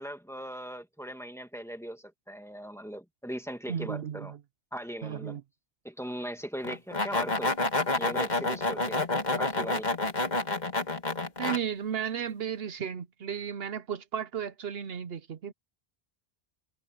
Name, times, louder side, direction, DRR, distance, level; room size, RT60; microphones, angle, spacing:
voice 1, 0.0-4.3 4.7-5.4 5.8-7.6 8.0-9.0 9.4-9.9, equal, 5° left, 2.1 m, -39 dB
voice 2, 3.7-4.4 5.0-5.4 11.4-15.5, right 8 dB, 70° right, 1.0 m, -34 dB
sound 1, 6.6-11.6, left 2 dB, 45° left, 2.0 m, -29 dB
omnidirectional pair, 1.1 m